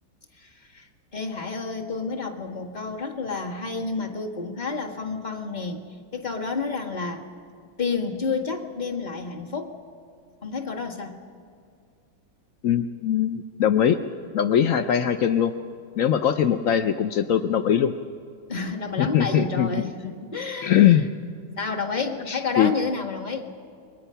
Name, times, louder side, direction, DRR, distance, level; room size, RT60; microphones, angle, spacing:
voice 1, 0.4-5.8 6.1-7.3 7.8-9.7 10.4-11.2 18.5-20.9 21.6-23.5, left 4 dB, 25° left, 2 dB, 1.7 m, -30 dB
voice 2, 12.6-14.0 14.3-15.5 16.0-17.9 19.0-19.7 20.6-21.1 22.3-22.7, left 9 dB, 70° left, 7 dB, 0.8 m, -21 dB
28.5 x 22.5 x 5.7 m, 2.3 s
omnidirectional pair, 2.2 m